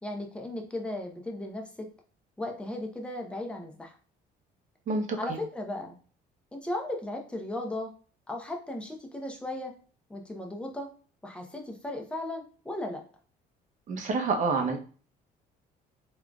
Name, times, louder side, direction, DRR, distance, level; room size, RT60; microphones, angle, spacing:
voice 1, 0.0-1.9 2.4-4.0 5.2-5.9 6.5-7.9 8.3-9.7 10.1-10.9 11.2-13.0, left 1 dB, 5° left, 2 dB, 0.6 m, -36 dB
voice 2, 4.9-5.4 13.9-14.8, right 4 dB, 50° right, 3 dB, 0.7 m, -28 dB
3.6 x 2.4 x 2.3 m, 0.41 s
cardioid pair, 110°, 17 cm